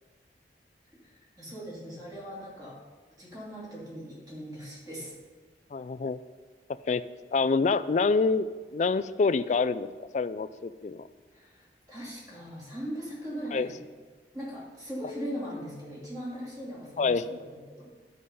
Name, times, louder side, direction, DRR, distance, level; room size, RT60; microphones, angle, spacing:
voice 1, 1.0-2.8 3.2-5.2 11.3-13.8 14.3-17.9, equal, 20° right, -6 dB, 2.6 m, -40 dB
voice 2, 5.7-6.2 6.9-7.0 7.3-9.9 10.1-11.1 13.5-13.7 17.0-17.4, left 4 dB, 40° left, 15 dB, 0.3 m, -26 dB
11.5 x 5.0 x 5.5 m, 1.5 s
head